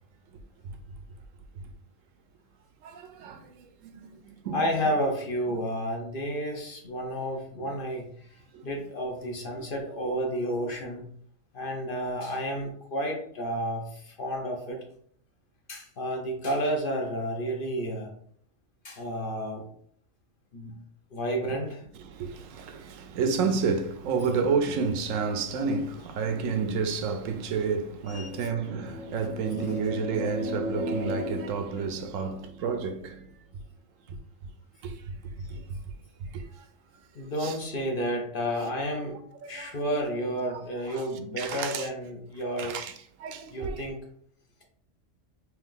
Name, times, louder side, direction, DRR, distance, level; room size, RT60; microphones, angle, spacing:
voice 1, 2.8-3.5 3.8-4.7 7.6-7.7 8.5-8.6 21.4-21.5 22.1-33.2 34.8-34.9 35.4-35.8 36.3-36.4 37.4-37.5 39.4-39.7 40.9-41.0 41.4-41.9 42.6-42.9 43.2-43.8, right 5 dB, 85° right, 1.0 m, -30 dB
voice 2, 4.5-8.1 8.6-11.1 11.5-14.8 15.7-18.1 18.8-19.6 20.5-20.8 21.1-21.8 28.1-28.5 29.6-29.8 37.1-39.2 39.5-42.8 43.5-44.0, equal, 50° left, 0.9 m, -31 dB
sound 1, 28.7-32.5, left 1 dB, 75° left, 1.4 m, -35 dB
3.4 x 2.9 x 3.7 m
omnidirectional pair, 1.3 m